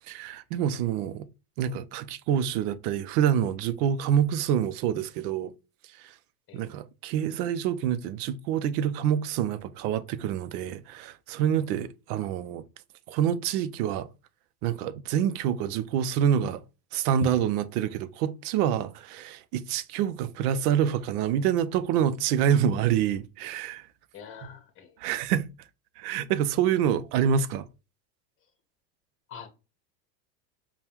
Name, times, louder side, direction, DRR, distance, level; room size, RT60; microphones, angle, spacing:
voice 1, 0.1-1.3 1.6-5.5 6.0-6.1 6.5-12.6 13.1-14.1 14.6-16.6 16.9-23.9 24.4-24.5 25.0-25.5 26.0-27.6, right 9 dB, 65° right, 0.6 m, -27 dB
voice 2, 24.1-25.0 29.3-29.5, left 7 dB, 25° left, 0.9 m, -45 dB
5.2 x 2.3 x 2.9 m
supercardioid pair, 125°, 50 cm